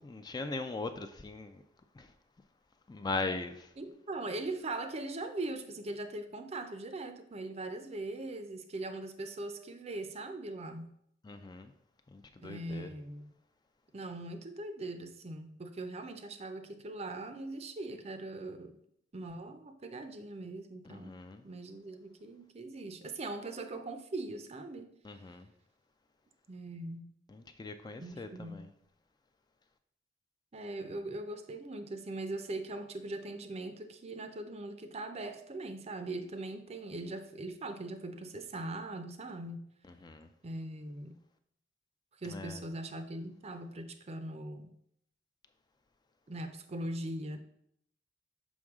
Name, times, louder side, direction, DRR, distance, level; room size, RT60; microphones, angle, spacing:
voice 1, 0.0-1.6 2.0-2.1 2.9-3.7 11.2-11.7 12.1-12.9 20.9-21.4 25.0-25.5 27.3-28.7 40.0-40.3 42.2-42.6, left 3 dB, 25° left, 0.3 m, -40 dB
voice 2, 3.8-10.9 12.4-13.3 13.9-18.8 19.1-21.2 21.4-24.9 26.5-27.1 28.0-28.7 30.5-39.7 40.4-41.2 42.2-44.7 46.3-47.4, right 2 dB, 35° right, 0.5 m, -41 dB
6.2 x 5.2 x 3.6 m
head